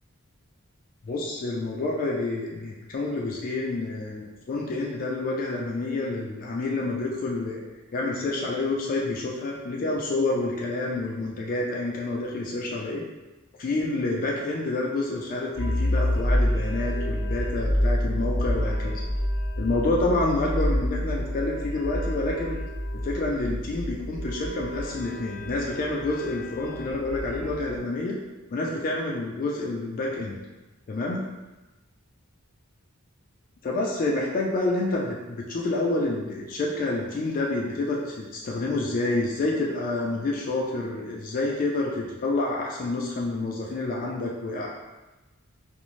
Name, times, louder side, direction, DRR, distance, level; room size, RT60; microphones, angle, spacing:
voice 1, 1.0-7.6 7.9-13.0 13.6-19.0 19.6-22.6 22.9-28.2 28.5-30.4 30.9-31.2 33.6-44.7, left 2 dB, 40° left, -3 dB, 0.3 m, -28 dB
sound 1, 15.6-27.8, left 1 dB, 35° right, 1.1 m, -28 dB
2.5 x 2.0 x 3.0 m, 1.1 s
head